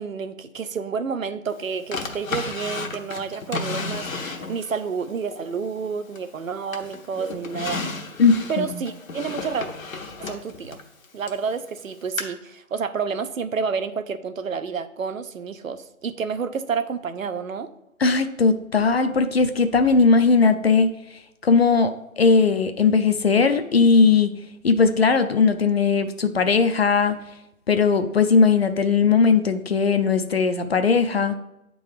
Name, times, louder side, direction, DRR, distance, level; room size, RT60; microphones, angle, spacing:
voice 1, 0.0-7.8 8.5-9.7 10.2-10.8 11.1-17.7, right 6 dB, 70° right, 10 dB, 0.7 m, -29 dB
Drawer open or close, 1.9-4.8 5.3-6.4 6.7-11.4 12.2-12.3, left 3 dB, 70° left, 1.1 m, -33 dB
voice 2, 8.2-8.8 18.0-21.0 21.4-24.3 24.6-27.2 27.7-31.3, left 5 dB, 45° left, 8 dB, 0.5 m, -18 dB
8.0 x 3.8 x 4.8 m, 0.86 s
figure-of-eight pair, 150°, 42 cm